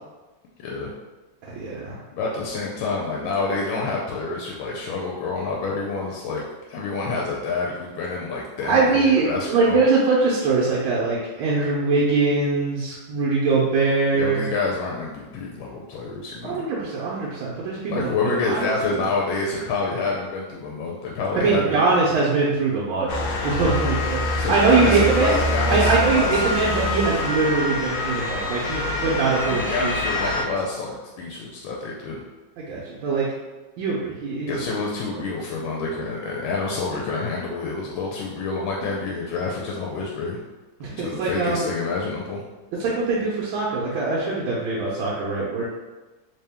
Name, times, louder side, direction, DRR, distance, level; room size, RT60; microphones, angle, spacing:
voice 1, 0.6-0.9 2.1-9.9 14.1-16.6 17.9-22.0 24.3-26.6 26.9-27.4 28.7-29.0 29.4-32.2 34.5-40.4 41.0-42.4, left 3 dB, 90° left, -3 dB, 1.4 m, -28 dB
voice 2, 1.5-2.0 8.6-14.5 16.4-18.1 18.4-19.1 21.3-23.1 23.4-25.4 25.7-30.5 32.6-33.3 33.8-34.5 40.8-41.7 42.8-45.6, right 4 dB, 90° right, -6 dB, 1.5 m, -22 dB
Motor vehicle (road) / Siren, 23.1-30.4, left 2 dB, 70° left, 1.2 m, -25 dB
3.4 x 2.9 x 3.4 m, 1.2 s
omnidirectional pair, 2.1 m